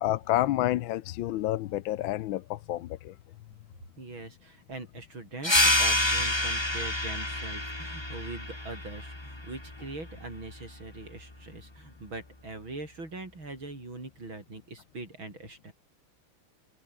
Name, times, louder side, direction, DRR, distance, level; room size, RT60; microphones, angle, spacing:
voice 1, 0.0-3.1, left 14 dB, 70° left, 1.4 m, -29 dB
voice 2, 4.0-15.7, right 2 dB, 65° right, 7.8 m, -42 dB
sound 1, 5.4-10.6, left 1 dB, 10° left, 3.3 m, -28 dB
omnidirectional pair, 2.4 m